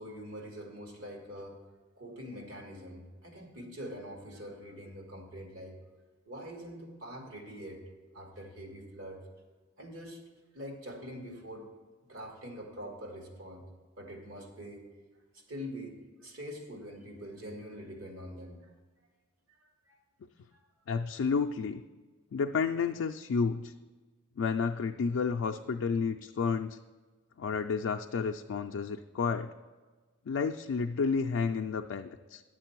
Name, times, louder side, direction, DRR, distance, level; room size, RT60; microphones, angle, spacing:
voice 1, 0.0-1.6 2.0-5.8 6.3-7.8 8.1-9.2 9.8-10.2 10.5-11.7 12.0-13.6 14.0-14.9 15.3-18.7 19.6-20.0 20.5-20.6, equal, 75° right, 1 dB, 1.9 m, -44 dB
voice 2, 20.9-21.8 22.3-23.7 24.4-26.8 27.4-29.5 30.3-32.4, left 5 dB, 85° left, 4 dB, 0.4 m, -31 dB
11.0 x 7.5 x 4.5 m, 1.3 s
head